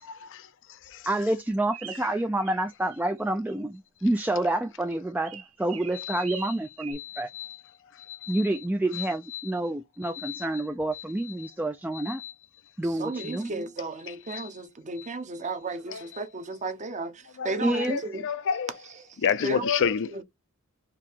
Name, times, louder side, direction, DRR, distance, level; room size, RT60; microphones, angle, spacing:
voice 1, 1.1-7.3 8.3-12.2 12.8-13.5 17.6-18.0, right 1 dB, 10° right, 0.3 m, -28 dB
sound 1, 1.7-2.6 2.9-3.5 5.2-6.9, right 9 dB, 70° right, 1.3 m, -43 dB
voice 2, 5.9-6.5 7.0-7.6 8.1-8.5 8.9-9.1 9.3-9.4 10.1-10.5 10.9-11.0 11.9-12.3 13.2-13.3 14.3-14.5 15.9-16.0 17.4-18.7 19.2-20.2, left 7 dB, 60° left, 0.5 m, -30 dB
voice 3, 12.8-18.3 18.8-19.1 19.4-19.7 20.1-20.2, right 3 dB, 35° right, 0.8 m, -34 dB
4.7 x 2.8 x 3.5 m
head